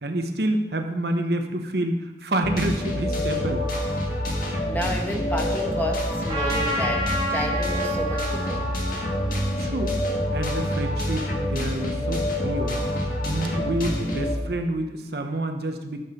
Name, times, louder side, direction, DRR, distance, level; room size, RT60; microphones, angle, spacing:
voice 1, 0.0-3.6 9.6-10.0 10.3-12.8 13.2-16.0, right 1 dB, 65° right, 5 dB, 0.9 m, -28 dB
sound 1, 2.4-14.3, left 1 dB, 50° left, 1.7 m, -27 dB
voice 2, 4.3-8.6, left 1 dB, 10° left, 1 dB, 1.2 m, -31 dB
Trumpet, 6.3-10.9, right 1 dB, 30° right, 2.7 m, -31 dB
13.5 x 7.0 x 4.3 m, 1.1 s
head